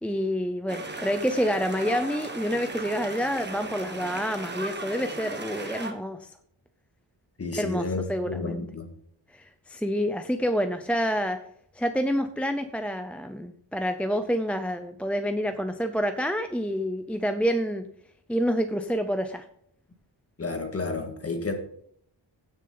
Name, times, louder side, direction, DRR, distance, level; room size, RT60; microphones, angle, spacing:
voice 1, 0.0-6.3 7.6-8.6 9.3-11.4 11.7-17.8 18.3-19.4, equal, 5° left, 7 dB, 0.5 m, -28 dB
sound 1, 0.7-5.9, right 2 dB, 25° right, 1.6 m, -37 dB
voice 2, 7.4-8.9 20.4-21.5, left 3 dB, 30° left, 4 dB, 1.8 m, -31 dB
16.5 x 6.4 x 3.9 m, 0.67 s
wide cardioid pair, 150°, 45 cm